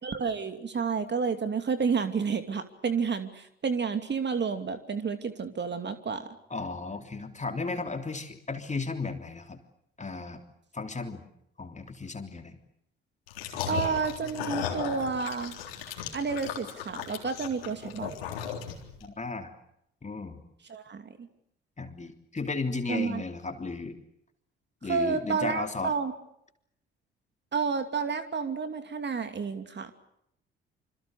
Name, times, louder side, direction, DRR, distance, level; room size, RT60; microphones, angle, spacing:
voice 1, 0.0-6.3 13.7-15.6 16.1-18.1 20.7-21.3 22.9-23.2 24.9-26.1 27.5-29.9, right 5 dB, 35° right, 8 dB, 2.7 m, -30 dB
voice 2, 6.5-9.6 10.0-10.4 10.7-11.2 11.6-12.6 13.5-13.9 19.0-19.5 20.0-20.4 21.8-24.0 24.8-25.9, left 3 dB, 25° left, 5 dB, 3.3 m, -35 dB
sound 1, 13.3-19.0, left 8 dB, 75° left, 3.7 m, -36 dB
27.5 x 26.5 x 6.7 m, 0.75 s
figure-of-eight pair, 45°, 30 cm